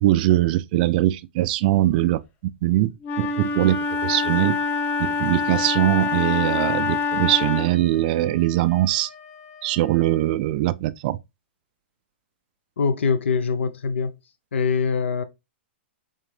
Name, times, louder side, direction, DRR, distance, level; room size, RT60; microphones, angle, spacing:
voice 1, 0.0-4.6 5.0-9.1 9.6-11.2, right 15 dB, 45° right, 0.3 m, -22 dB
Wind instrument woodwind instrument, 3.0-7.9, left 4 dB, 30° left, 0.6 m, -25 dB
Wind instrument woodwind instrument 2, 7.2-10.3, left 6 dB, 60° left, 1.8 m, -46 dB
voice 2, 12.8-14.2 14.5-15.2, left 5 dB, 80° left, 0.4 m, -23 dB
3.5 x 3.3 x 3.3 m
hypercardioid pair, 125°, 6 cm